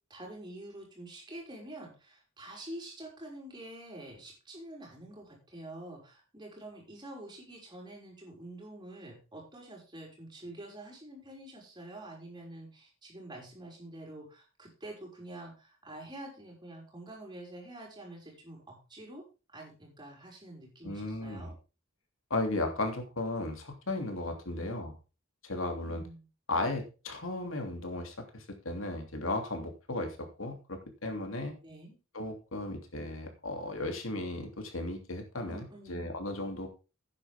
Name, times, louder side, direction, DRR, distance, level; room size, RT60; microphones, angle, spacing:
voice 1, 0.1-19.2 19.5-21.5 24.5-24.7 25.8-26.2 31.6-32.0 35.5-36.1, right 1 dB, 20° right, -1 dB, 5.8 m, -47 dB
voice 2, 20.8-21.5 22.3-24.9 25.4-26.0 26.5-31.5 32.1-36.7, left 2 dB, 90° left, 5 dB, 3.0 m, -35 dB
12.5 x 9.8 x 3.6 m, 0.32 s
head